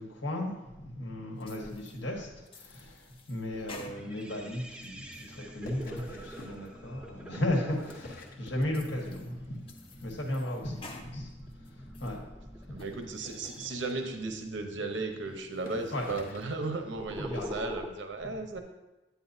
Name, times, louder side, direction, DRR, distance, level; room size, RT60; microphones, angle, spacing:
voice 1, 0.0-12.3 12.6-12.8 15.9-16.1 17.2-17.5, left 1 dB, 80° left, 0 dB, 1.6 m, -36 dB
sound 1, 1.4-2.0 2.5-4.3 4.7-5.4 5.8-6.2 6.6-6.7 7.3-7.4 8.1-8.2 8.6-9.3 9.7-11.1 11.5-12.2 12.6-13.0, left 2 dB, 30° left, 0.7 m, -50 dB
sound 2, 3.5-17.9, equal, 5° right, 0.5 m, -46 dB
sound 3, 5.5-6.7 7.5-9.1 9.4-9.9 10.1-10.3 10.6-10.7 10.9-11.0 11.3-11.4 12.0-12.1 13.0-14.4 15.1-15.2 15.5-16.6 17.4-17.5, left 2 dB, 55° left, 1.1 m, -50 dB
voice 2, 12.7-18.6, right 3 dB, 85° right, 5 dB, 0.9 m, -35 dB
9.2 x 8.5 x 2.7 m, 1.0 s
head